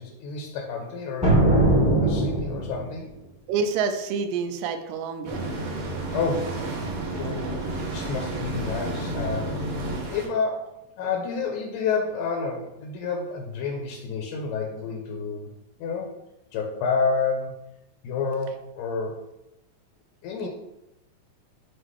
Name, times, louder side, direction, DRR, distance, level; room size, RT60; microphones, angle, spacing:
voice 1, 0.0-1.4 2.0-3.1 6.1-6.6 7.1-9.6 10.0-15.5 15.8-16.1 16.5-17.5 18.0-19.2 20.2-20.5, left 5 dB, 75° left, 1 dB, 2.2 m, -29 dB
sound 1, 1.2-3.0, right 1 dB, 5° right, 1.1 m, -20 dB
voice 2, 3.5-5.5 20.4-20.5, right 5 dB, 80° right, 6 dB, 2.2 m, -27 dB
sound 2, 5.2-10.3, right 2 dB, 55° right, 1.7 m, -31 dB
7.6 x 2.9 x 4.7 m, 0.88 s
omnidirectional pair, 4.1 m